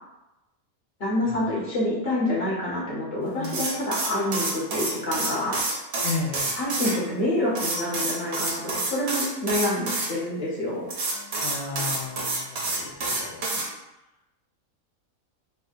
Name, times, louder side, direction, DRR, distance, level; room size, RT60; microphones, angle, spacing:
voice 1, 1.0-5.6 6.5-10.9, left 1 dB, 50° left, -6 dB, 1.1 m, -27 dB
sound 1, 3.4-6.9 7.5-10.1 10.9-13.7, right 2 dB, 55° right, 1.0 m, -28 dB
voice 2, 6.0-6.5 11.4-13.4, left 3 dB, 65° left, 1 dB, 0.8 m, -33 dB
4.3 x 2.1 x 2.4 m, 0.95 s
omnidirectional pair, 1.5 m